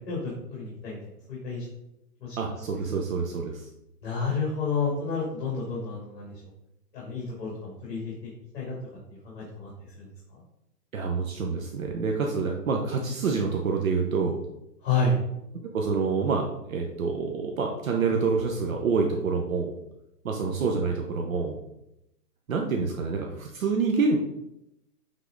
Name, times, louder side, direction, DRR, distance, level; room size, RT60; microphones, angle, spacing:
voice 1, 0.5-1.6 2.2-2.3 4.0-6.3 6.9-8.3 8.5-8.7 9.2-9.7 10.0-10.1 14.8-15.2, left 3 dB, 35° left, -5 dB, 2.4 m, -30 dB
voice 2, 2.4-3.6 10.9-14.4 15.7-19.7 20.2-21.6 22.5-24.2, right 4 dB, 55° right, 1 dB, 0.9 m, -27 dB
8.3 x 3.8 x 3.8 m, 0.85 s
hypercardioid pair, 160°, 49 cm